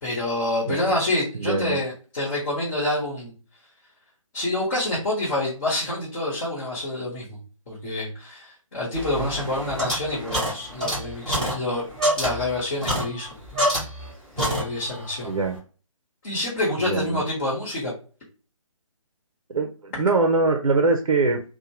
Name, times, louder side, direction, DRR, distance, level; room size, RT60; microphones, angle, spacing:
voice 1, 0.0-3.3 4.3-7.4 7.7-11.9 12.2-13.3 14.4-15.3 16.2-18.0, left 1 dB, 30° left, -6 dB, 1.0 m, -27 dB
voice 2, 1.3-1.8 9.2-9.3 15.2-15.6 16.8-17.2 19.5-21.4, right 3 dB, 65° right, 4 dB, 0.5 m, -23 dB
sound 1, 8.9-14.1 14.4-15.0, equal, 5° left, 0.8 m, -27 dB
2.8 x 2.2 x 2.8 m, 0.37 s
figure-of-eight pair, 145°, 18 cm